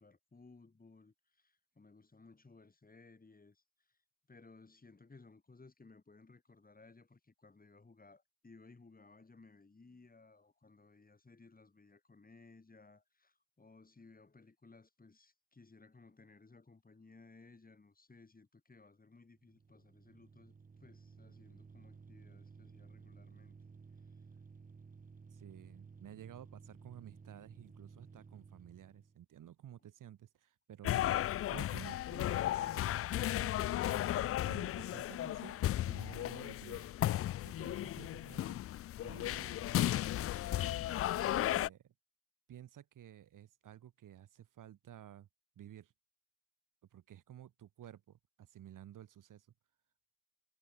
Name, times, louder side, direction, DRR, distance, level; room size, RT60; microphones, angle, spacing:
voice 1, 0.0-4.0 4.3-20.5 20.8-23.6 24.1-24.2, left 3 dB, 20° left, 3.1 m, -60 dB
sound 1, 19.3-29.2, right 5 dB, 20° right, 0.9 m, -56 dB
voice 2, 25.3-31.1 31.5-32.9 33.3-36.9 37.4-38.6 39.0-39.6 41.3-41.9 42.5-45.3 45.5-45.9 46.9-49.5, right 11 dB, 55° right, 1.7 m, -54 dB
sound 2, 30.8-41.7, left 13 dB, 40° left, 0.4 m, -35 dB
hypercardioid pair, 45°, 39 cm